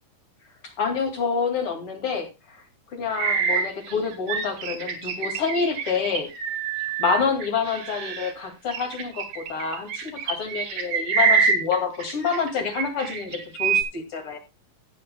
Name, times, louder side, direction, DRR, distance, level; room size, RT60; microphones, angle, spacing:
voice 1, 0.6-2.6 2.9-6.3 7.0-14.4, left 5 dB, 45° left, 5 dB, 2.9 m, -27 dB
sound 1, 3.2-8.3 8.7-12.5 12.8-13.8, right 6 dB, 75° right, 3.5 m, -25 dB
18.5 x 7.8 x 2.2 m, 0.24 s
omnidirectional pair, 3.9 m